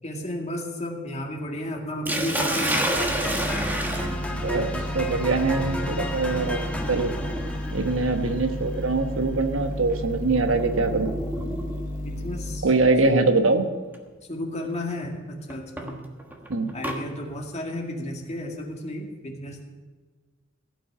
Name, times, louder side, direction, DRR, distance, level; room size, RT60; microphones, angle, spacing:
voice 1, 0.0-2.9 12.0-12.7 14.3-16.0 16.7-19.6, left 1 dB, 35° left, 1 dB, 2.1 m, -33 dB
Sink (filling or washing), 2.1-12.0 13.1-13.4 13.9-14.0 15.5-17.0, right 1 dB, 10° right, 1.4 m, -31 dB
sound 1, 2.9-12.6, left 1 dB, 45° right, 1.6 m, -33 dB
sound 2, 3.0-9.1, equal, 5° left, 1.6 m, -34 dB
voice 2, 4.3-7.1 7.7-11.1 12.6-13.6 16.5-16.7, right 3 dB, 75° right, 6 dB, 1.2 m, -23 dB
16.0 x 6.1 x 8.7 m, 1.4 s
head